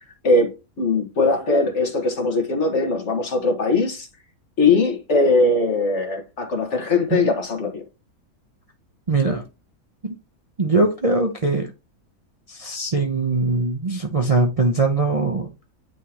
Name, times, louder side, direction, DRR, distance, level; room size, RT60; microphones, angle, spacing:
voice 1, 0.2-4.1 4.6-7.8, left 3 dB, 55° left, 1.6 m, -20 dB
voice 2, 9.1-9.4 10.0-10.1 10.6-11.7 12.5-15.5, right 3 dB, 30° right, 0.7 m, -21 dB
9.2 x 3.7 x 2.9 m
omnidirectional pair, 1.5 m